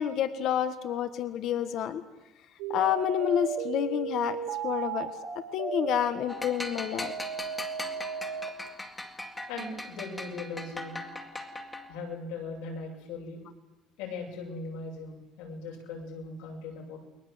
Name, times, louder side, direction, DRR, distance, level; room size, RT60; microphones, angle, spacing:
voice 1, 0.0-2.0 2.7-4.4 4.6-5.1 5.5-7.1, left 10 dB, 50° left, 9 dB, 1.6 m, -29 dB
sound 1, 2.6-8.5, right 6 dB, 90° right, 4.0 m, -35 dB
sound 2, 6.3-12.1, left 1 dB, 10° left, 2.2 m, -40 dB
voice 2, 9.5-11.0 11.9-13.4 14.0-17.0, left 3 dB, 90° left, 0 dB, 7.5 m, -39 dB
29.5 x 21.5 x 7.9 m, 1.0 s
cardioid pair, 160°, 0 cm